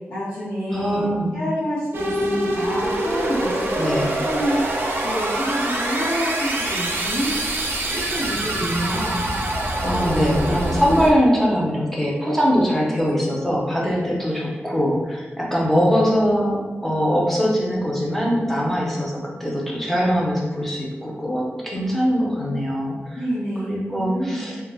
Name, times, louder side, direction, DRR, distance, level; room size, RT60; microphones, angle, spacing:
voice 1, 0.1-1.1 1.3-3.9 4.2-4.7 5.0-7.3 7.9-9.3 23.1-24.6, equal, 55° left, -10 dB, 0.7 m, -27 dB
voice 2, 0.7-1.3 3.8-4.1 9.8-23.3 23.7-24.6, equal, 5° left, -4 dB, 0.6 m, -22 dB
sound 1, 1.9-11.1, right 1 dB, 60° right, 0.4 m, -25 dB
2.2 x 2.0 x 3.3 m, 1.2 s
wide cardioid pair, 115°, 4 cm